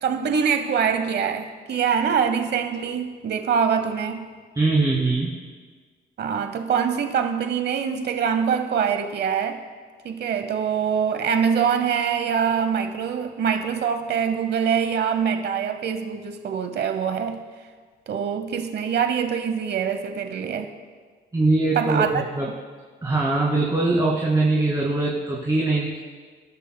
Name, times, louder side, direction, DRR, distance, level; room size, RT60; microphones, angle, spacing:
voice 1, 0.0-4.3 6.2-9.6 10.0-17.4 18.1-20.7 21.7-22.2, right 7 dB, 55° right, 7 dB, 0.9 m, -24 dB
voice 2, 4.5-5.3 21.3-22.5 23.0-26.0, right 2 dB, 20° right, -4 dB, 2.2 m, -22 dB
23.5 x 12.5 x 2.2 m, 1.5 s
cardioid pair, 90°, 20 cm